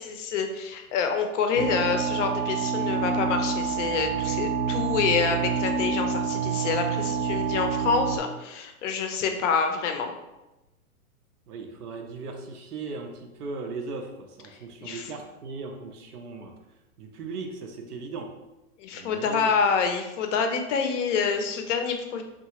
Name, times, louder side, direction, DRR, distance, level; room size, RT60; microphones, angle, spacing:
voice 1, 0.0-10.1 14.8-15.1 18.8-22.2, left 5 dB, 55° left, 5 dB, 0.5 m, -27 dB
sound 1, 1.6-8.2, right 6 dB, 45° right, 0.5 m, -27 dB
voice 2, 11.5-16.5 17.0-18.3 18.9-19.5, right 4 dB, 90° right, 4 dB, 0.6 m, -38 dB
2.7 x 2.3 x 2.9 m, 1.0 s
hypercardioid pair, 125°, 44 cm